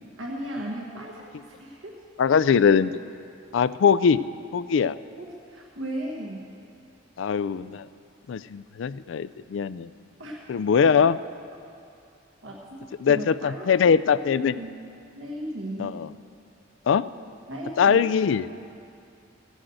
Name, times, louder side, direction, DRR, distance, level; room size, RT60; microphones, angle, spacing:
voice 1, 0.2-1.2 1.6-2.0 5.2-6.5 10.2-10.4 12.4-13.8 14.1-14.2 14.5-14.8 15.2-16.0 17.5-18.0, right 1 dB, 90° right, -2 dB, 1.5 m, -36 dB
voice 2, 2.2-3.0 3.5-4.2 4.5-5.0 7.2-7.9 8.3-9.9 10.5-11.2 13.0-14.5 15.8-16.1 16.9-17.0 17.8-18.5, left 6 dB, 70° left, 16 dB, 0.3 m, -21 dB
16.0 x 6.3 x 7.7 m, 2.5 s
head